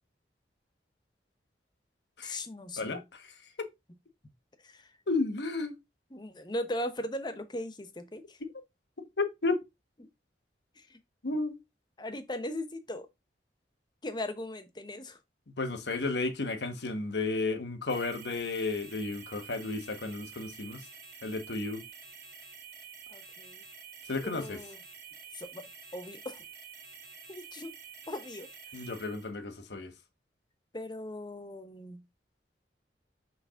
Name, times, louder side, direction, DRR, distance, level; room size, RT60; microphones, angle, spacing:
voice 1, 2.2-3.0 4.6-4.9 6.1-8.4 10.0-10.1 10.8-11.0 12.0-13.1 14.0-15.2 23.1-23.6 24.2-24.8 25.3-25.6 25.9-26.4 27.3-27.7 28.1-28.5 28.7-28.9 30.7-32.0, left 1 dB, 25° left, 0.9 m, -38 dB
voice 2, 2.8-3.3 3.6-3.7 5.1-5.8 9.2-9.6 11.2-11.6 15.6-20.8 21.2-21.8 24.1-24.6 28.7-29.9, left 3 dB, 75° left, 1.1 m, -33 dB
sound 1, 17.9-29.3, right 6 dB, 60° right, 2.1 m, -49 dB
5.9 x 3.1 x 5.6 m
head